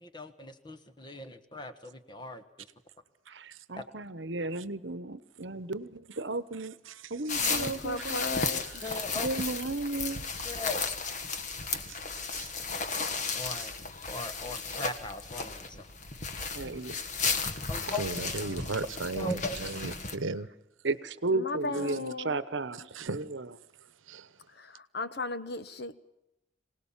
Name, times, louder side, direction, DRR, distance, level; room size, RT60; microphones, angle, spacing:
voice 1, 0.0-2.4 3.8-3.9 8.8-9.3 10.4-10.8 13.3-13.7 14.1-15.9 17.7-18.0 19.2-19.6, left 2 dB, 25° left, 1.4 m, -38 dB
voice 2, 3.3-6.8 7.1-8.4 8.8-10.5 16.5-16.9 20.8-23.5, right 3 dB, 65° right, 1.0 m, -34 dB
voice 3, 6.6-7.2 7.5-7.6 8.0-8.4 8.7-9.0 11.8-12.0 12.3-12.5 13.6-13.7 17.9-20.5 21.7-22.0 22.9-23.3 23.8-24.5, right 3 dB, 90° right, 1.0 m, -38 dB
sound 1, 7.3-20.2, left 4 dB, 40° left, 1.6 m, -34 dB
voice 4, 7.4-8.8 17.6-18.7 21.3-22.4 24.5-25.9, left 3 dB, 55° left, 1.1 m, -37 dB
25.5 x 18.5 x 7.3 m
head